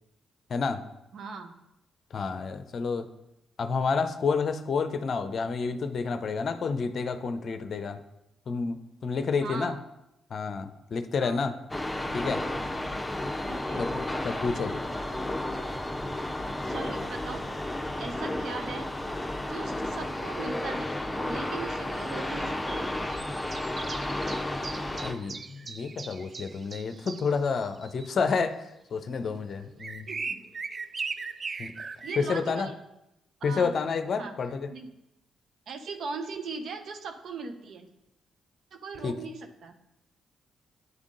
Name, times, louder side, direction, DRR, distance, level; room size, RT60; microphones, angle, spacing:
voice 1, 0.5-0.8 2.1-3.1 3.6-8.0 8.5-9.8 10.3-11.6 12.1-12.4 13.8-13.9 14.2-14.7 25.0-28.6 28.9-30.1 31.6-31.7 32.2-32.7 33.4-34.7 39.0-39.2, left 5 dB, 55° left, 9 dB, 0.6 m, -29 dB
voice 2, 1.1-1.5 9.4-9.8 11.2-11.5 13.5-13.9 16.6-17.4 18.0-18.9 19.4-22.9 30.1-30.4 32.0-32.7 33.4-33.7 34.2-34.4 34.7-34.9 35.7-37.9 38.7-39.7, right 4 dB, 60° right, 6 dB, 0.7 m, -39 dB
sound 1, 11.7-25.1, left 1 dB, 10° left, 0.8 m, -32 dB
sound 2, 22.0-28.1 29.0-29.1 29.8-32.3, right 4 dB, 40° right, 0.3 m, -39 dB
9.3 x 3.6 x 3.8 m, 0.87 s
hypercardioid pair, 40°, 0 cm